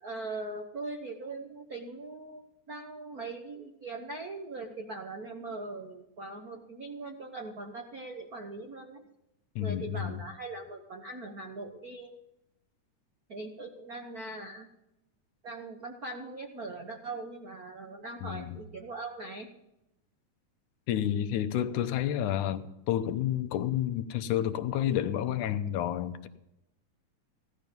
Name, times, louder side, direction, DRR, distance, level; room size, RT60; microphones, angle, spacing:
voice 1, 0.0-9.0 9.6-12.1 13.3-14.7 15.4-19.5, right 2 dB, 90° right, 3 dB, 0.8 m, -41 dB
voice 2, 9.6-10.2 18.2-18.6 20.9-26.3, left 11 dB, 80° left, 10 dB, 2.3 m, -30 dB
16.5 x 12.5 x 5.2 m, 0.89 s
omnidirectional pair, 3.6 m